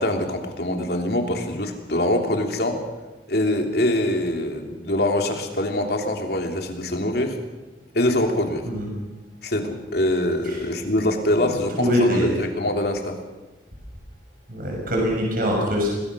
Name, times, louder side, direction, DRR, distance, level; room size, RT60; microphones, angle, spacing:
voice 1, 0.0-2.8 3.3-7.4 7.9-8.6 9.4-13.2, left 1 dB, 60° left, 3 dB, 3.2 m, -24 dB
voice 2, 11.4-12.4 14.5-15.9, equal, 50° right, -1 dB, 6.7 m, -23 dB
26.5 x 19.5 x 6.3 m, 1.2 s
head